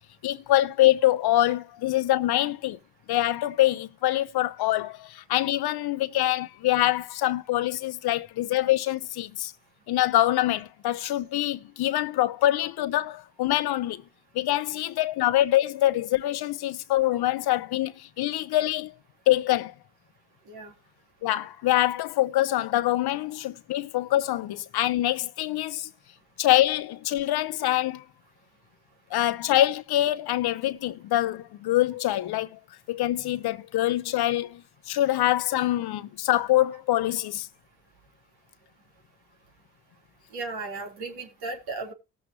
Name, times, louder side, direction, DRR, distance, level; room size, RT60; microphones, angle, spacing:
voice 1, 0.2-2.8 3.1-9.5 9.9-14.0 14.3-18.9 19.3-19.7 21.2-25.9 26.4-28.0 29.1-32.6 32.9-37.5, left 14 dB, 75° left, 0.9 m, -25 dB
voice 2, 40.3-41.9, right 3 dB, 75° right, 4.4 m, -35 dB
18.5 x 7.3 x 3.2 m
supercardioid pair, 55°, 39 cm